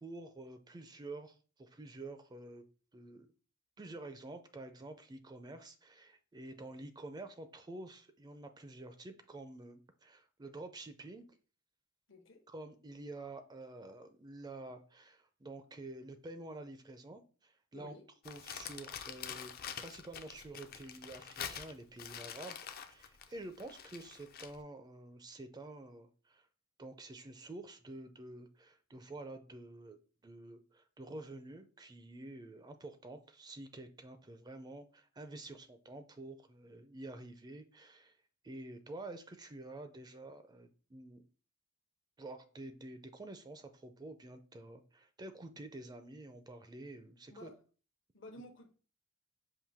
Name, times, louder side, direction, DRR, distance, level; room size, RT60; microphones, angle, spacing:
voice 1, 0.0-2.6 2.9-3.3 3.8-11.3 12.5-18.0 18.2-26.5 26.8-30.0 30.2-38.2 38.4-41.2 42.2-47.5, right 2 dB, 20° right, 0.4 m, -49 dB
voice 2, 12.1-12.4 17.7-18.0 47.3-47.5 48.1-48.7, left 1 dB, 65° left, 0.9 m, -52 dB
Crumpling crinkling, 18.2-24.6, left 8 dB, 50° left, 0.5 m, -46 dB
5.6 x 2.6 x 3.4 m
head